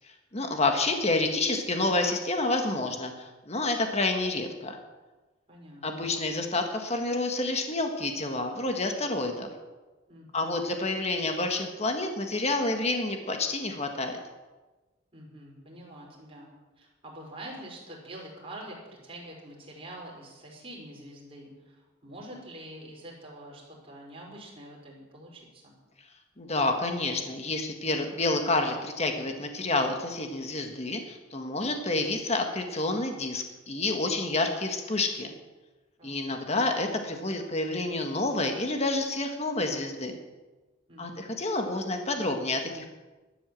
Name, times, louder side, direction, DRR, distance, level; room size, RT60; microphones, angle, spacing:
voice 1, 0.3-4.8 5.8-9.5 10.3-14.2 26.4-35.3 36.0-40.2 41.0-42.9, left 2 dB, 35° left, 4 dB, 1.7 m, -29 dB
voice 2, 5.5-6.1 10.1-10.5 15.1-16.5 16.8-25.8 36.0-36.3 40.9-41.3, right 1 dB, 30° right, -3 dB, 5.1 m, -46 dB
13.0 x 11.0 x 7.7 m, 1.2 s
head